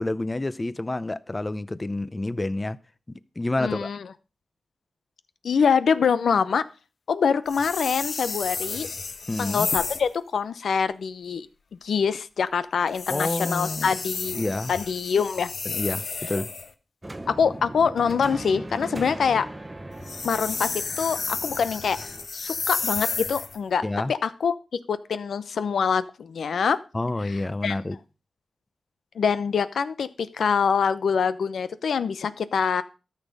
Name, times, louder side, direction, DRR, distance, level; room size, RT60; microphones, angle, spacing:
voice 1, 0.0-2.8 3.1-3.9 9.3-9.7 13.1-13.9 14.3-14.7 15.7-16.5 23.8-24.1 26.9-28.0, left 2 dB, 25° left, 0.6 m, -28 dB
voice 2, 3.6-4.0 5.4-6.6 7.1-8.9 9.4-11.5 11.7-14.4 14.7-15.5 17.3-19.5 20.2-22.0 22.3-24.6 24.9-26.8 27.2-27.3 27.6-27.8 29.1-32.8, left 6 dB, 85° left, 0.7 m, -25 dB
sound 1, 7.5-10.1 12.9-16.7 19.9-23.6, left 4 dB, 65° left, 1.1 m, -32 dB
sound 2, 17.0-22.3, right 1 dB, 20° right, 1.0 m, -39 dB
13.5 x 6.5 x 5.3 m
cardioid pair, 75°, 0 cm